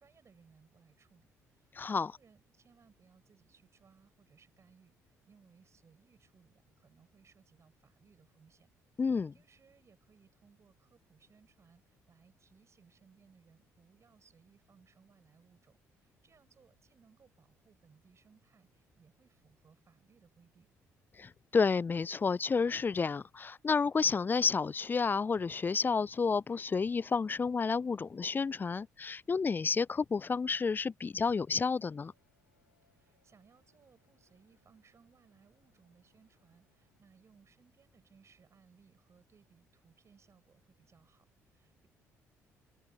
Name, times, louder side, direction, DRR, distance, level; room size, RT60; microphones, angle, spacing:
voice 1, 0.0-8.7 9.0-20.7 32.9-41.9, right 6 dB, 35° right, 7.3 m, -65 dB
voice 2, 1.8-2.1 9.0-9.3 21.2-32.1, left 5 dB, 25° left, 0.5 m, -30 dB
sound 1, 31.0-37.0, left 4 dB, 85° left, 7.9 m, -77 dB
open air
figure-of-eight pair, 45°, 8 cm